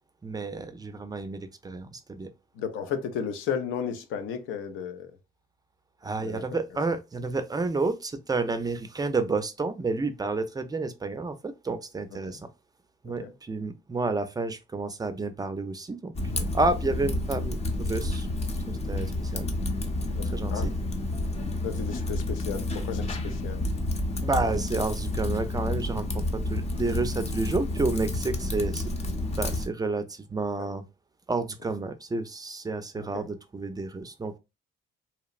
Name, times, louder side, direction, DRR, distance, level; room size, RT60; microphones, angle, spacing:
voice 1, 0.2-2.3 6.0-12.5 13.0-18.3 18.7-19.5 20.3-20.7 24.2-28.9 29.4-30.8 31.3-34.4, right 3 dB, 20° right, 0.4 m, -30 dB
voice 2, 2.6-5.1 6.2-6.6 12.3-12.4 13.2-13.3 20.1-20.7 21.6-23.6 33.0-33.3, left 7 dB, 90° left, 0.5 m, -34 dB
Typing, 16.1-29.7, left 2 dB, 30° left, 0.6 m, -30 dB
2.8 x 2.0 x 2.3 m
cardioid pair, 90°, 20 cm